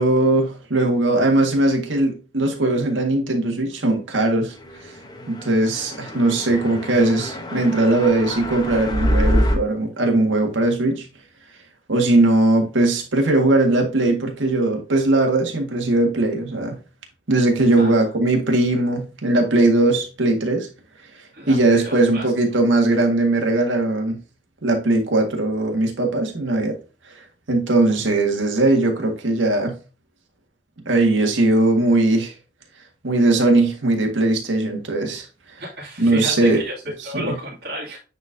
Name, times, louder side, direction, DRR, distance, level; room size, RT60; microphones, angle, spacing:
voice 1, 0.0-4.6 4.8-4.9 5.3-11.1 11.9-16.8 17.3-20.7 21.5-24.2 24.6-26.8 27.5-29.8 30.9-32.3 33.0-35.3 36.0-36.6 37.0-37.4, right 2 dB, 85° right, 1.8 m, -19 dB
sound 1, 5.1-9.6, equal, 20° left, 0.9 m, -25 dB
voice 2, 17.8-18.1 21.3-22.2 35.6-38.0, equal, 55° right, 2.5 m, -32 dB
9.3 x 4.1 x 2.7 m
head